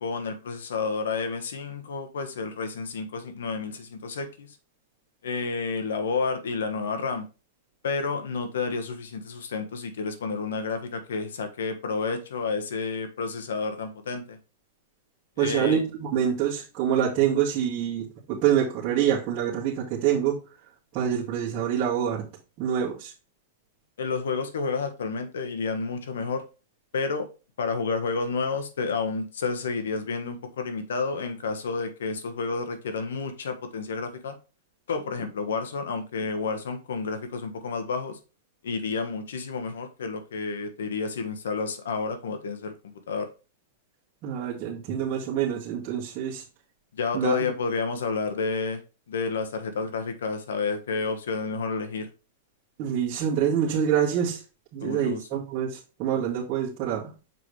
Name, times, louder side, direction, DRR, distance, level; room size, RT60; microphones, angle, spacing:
voice 1, 0.0-4.6 5.2-7.3 7.8-14.4 15.4-15.8 24.0-26.4 26.9-27.3 27.6-34.4 34.9-38.2 38.6-42.7 43.1-43.3 46.9-48.8 49.1-52.1 54.8-55.4, left 4 dB, 90° left, 8 dB, 1.3 m, -30 dB
voice 2, 15.4-20.4 20.9-22.2 22.6-23.1 44.2-46.4 47.1-47.4 52.8-54.4 54.7-57.1, right 9 dB, 35° right, -8 dB, 2.1 m, -26 dB
6.8 x 4.9 x 3.2 m, 0.32 s
supercardioid pair, 150°, 0 cm